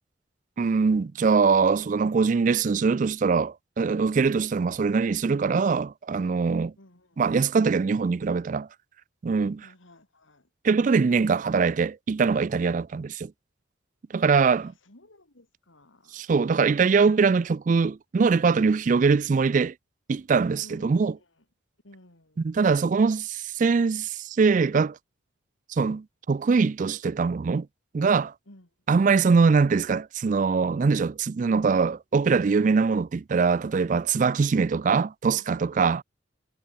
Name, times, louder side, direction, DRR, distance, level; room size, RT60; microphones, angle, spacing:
voice 1, 0.6-6.7 7.2-8.7 9.2-9.6 10.6-13.3 14.1-14.7 16.1-19.7 20.1-21.1 22.4-25.0 25.7-27.7 27.9-28.3 28.9-36.0, right 5 dB, 40° right, 0.3 m, -22 dB
voice 2, 4.8-5.1 6.8-7.3 9.6-10.5 14.5-16.3 20.6-21.5 21.8-22.5 28.5-29.4 34.5-34.8 35.4-36.0, left 1 dB, 80° left, 3.6 m, -55 dB
head